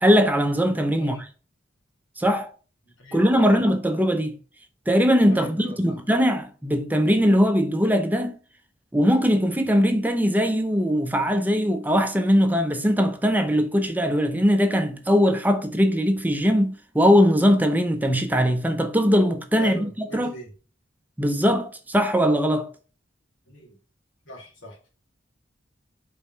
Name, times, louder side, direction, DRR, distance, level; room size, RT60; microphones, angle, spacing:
voice 1, 0.0-1.2 2.2-2.5 3.1-4.4 4.9-8.4 8.9-20.3 21.2-22.7, equal, 10° right, 0.6 m, -20 dB
voice 2, 3.0-3.6 5.3-6.0 19.6-20.5 23.5-23.8 24.3-24.9, right 1 dB, 80° left, 2.5 m, -40 dB
5.2 x 4.2 x 5.6 m
head